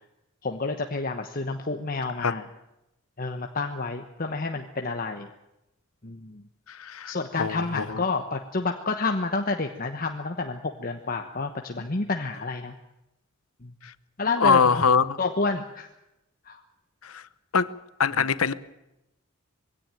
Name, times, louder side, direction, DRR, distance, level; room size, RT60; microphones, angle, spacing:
voice 1, 0.4-2.4 3.2-5.3 6.0-6.4 7.1-12.7 13.6-13.7 14.2-14.9 15.2-15.9 16.5-16.6, left 3 dB, 40° left, 1.2 m, -29 dB
voice 2, 6.7-8.0 13.8-13.9 14.4-15.2 17.0-17.2 17.5-17.7 18.0-18.5, left 5 dB, 75° left, 0.9 m, -23 dB
21.5 x 17.0 x 9.1 m
head